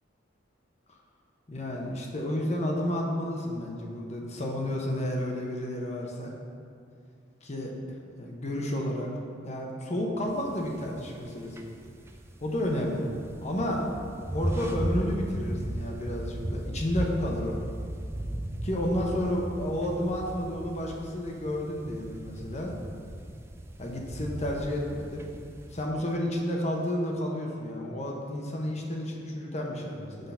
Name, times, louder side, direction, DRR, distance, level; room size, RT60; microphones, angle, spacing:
voice 1, 1.5-6.3 7.4-7.7 8.2-9.1 9.4-11.6 12.4-13.1 13.4-13.9 14.3-17.6 18.6-22.7 23.8-25.3 25.7-30.3, left 1 dB, 35° left, 0 dB, 0.9 m, -31 dB
sound 1, 10.3-25.8, right 1 dB, 15° right, 0.4 m, -37 dB
7.9 x 3.8 x 5.6 m, 2.4 s
head